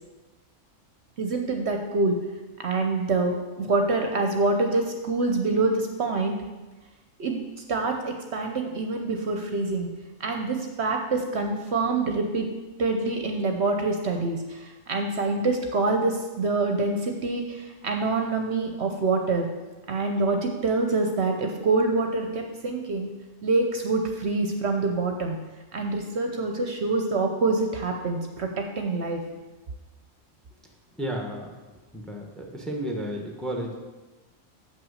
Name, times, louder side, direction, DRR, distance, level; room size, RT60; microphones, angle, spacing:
voice 1, 1.2-2.2 2.6-6.4 7.2-7.4 7.7-9.9 10.2-12.5 12.8-19.5 19.9-23.1 23.4-25.4 25.7-29.2, right 3 dB, 60° right, 4 dB, 1.0 m, -26 dB
voice 2, 30.9-31.5 31.9-33.7, right 1 dB, ahead, 1 dB, 1.1 m, -32 dB
7.6 x 6.0 x 6.4 m, 1.2 s
omnidirectional pair, 1.4 m